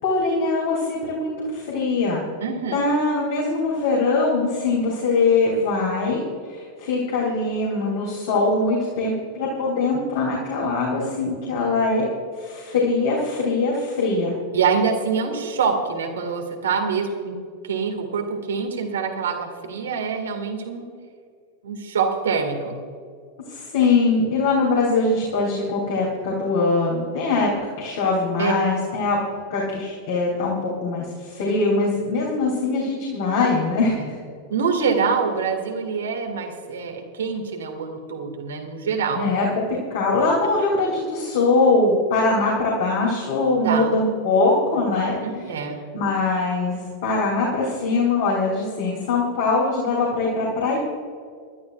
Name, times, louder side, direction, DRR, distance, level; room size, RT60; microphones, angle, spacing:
voice 1, 0.0-2.3 2.7-12.1 12.4-14.4 23.5-27.5 27.8-29.2 29.5-34.1 39.1-39.6 39.9-45.2 45.9-50.8, left 3 dB, 55° left, -3 dB, 3.2 m, -22 dB
voice 2, 2.4-2.8 14.5-17.4 17.6-20.8 21.6-22.8 28.4-28.5 34.0-34.1 34.5-39.3 43.6-43.9 45.2-45.8, right 5 dB, 65° right, 4 dB, 2.1 m, -25 dB
24.5 x 12.0 x 2.5 m, 2.2 s
figure-of-eight pair, 90°, 0 cm